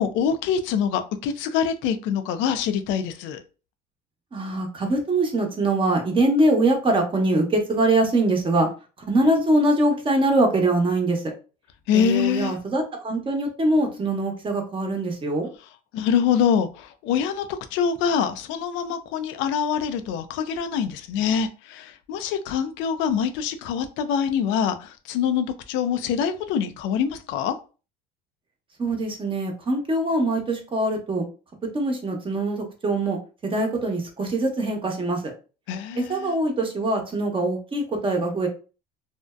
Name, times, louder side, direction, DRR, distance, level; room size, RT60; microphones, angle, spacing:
voice 1, 0.0-3.4 11.9-12.6 15.9-27.6 35.7-36.4, left 7 dB, 65° left, 0.4 m, -25 dB
voice 2, 4.3-8.7 9.0-11.2 11.9-15.5 28.8-31.2 31.6-33.2 33.4-35.2 36.0-38.5, right 2 dB, 25° right, 0.8 m, -23 dB
2.6 x 2.0 x 2.3 m
supercardioid pair, 90°, 21 cm